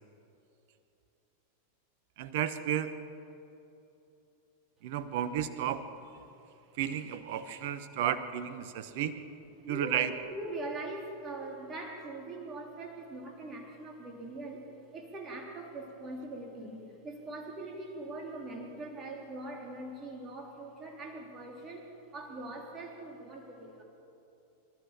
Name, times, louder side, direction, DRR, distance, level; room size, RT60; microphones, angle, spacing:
voice 1, 2.2-2.9 4.8-5.8 6.7-9.1 9.7-10.1, right 10 dB, 50° right, 13 dB, 1.1 m, -32 dB
voice 2, 9.6-23.8, right 2 dB, 25° right, 1 dB, 3.6 m, -42 dB
26.0 x 13.5 x 7.4 m, 2.9 s
figure-of-eight pair, 90°, 0 cm